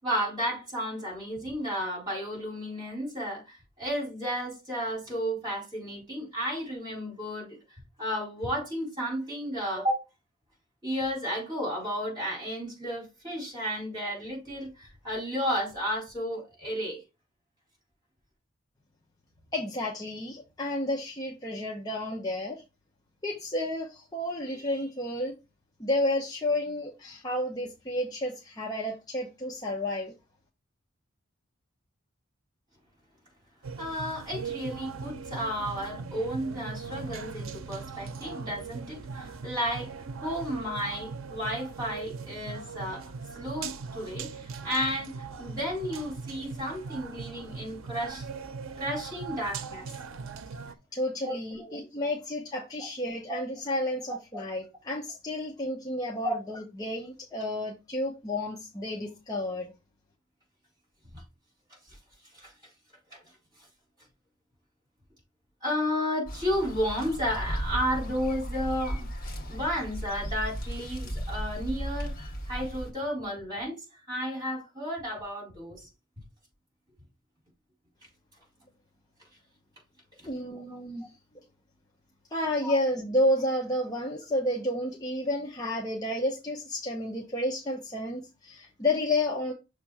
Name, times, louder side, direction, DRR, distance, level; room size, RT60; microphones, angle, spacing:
voice 1, 0.0-7.6 8.0-10.0 10.8-17.0 33.8-48.3 48.8-49.9 51.2-51.9 53.3-53.4 54.3-54.4 56.2-56.4 61.1-61.2 62.3-62.5 63.1-63.2 65.6-69.1 69.5-73.8 74.1-75.9 80.5-80.8 82.6-82.7, equal, 20° right, 3.9 m, -33 dB
voice 2, 19.5-22.6 23.2-25.3 25.8-30.1 50.9-59.7 80.3-81.1 82.3-89.5, left 1 dB, 20° left, 0.9 m, -31 dB
sound 1, 33.6-50.7, right 5 dB, 85° right, 0.6 m, -40 dB
sound 2, 66.3-72.9, equal, 40° left, 1.6 m, -35 dB
6.5 x 3.3 x 4.8 m
head